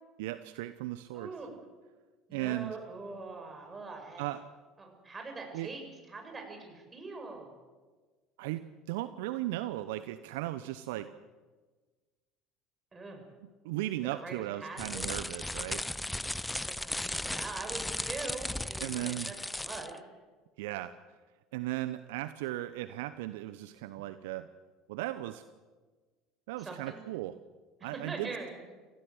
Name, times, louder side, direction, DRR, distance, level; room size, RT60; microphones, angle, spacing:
voice 1, 0.2-1.3 2.3-2.8 4.2-4.4 5.5-5.7 8.4-11.1 13.6-15.8 18.8-19.3 20.6-20.9 21.5-24.5 24.9-25.4 26.5-27.3 27.8-28.3, right 15 dB, 70° right, 12 dB, 0.8 m, -36 dB
voice 2, 1.1-1.5 2.3-4.3 4.8-7.5 12.9-13.2 14.1-15.1 16.6-20.0 26.6-27.0 27.8-28.7, right 3 dB, 25° right, 3 dB, 7.5 m, -43 dB
sound 1, 14.8-20.0, left 1 dB, 10° left, 0.7 m, -36 dB
27.5 x 16.5 x 8.0 m, 1.3 s
hypercardioid pair, 70°, 0 cm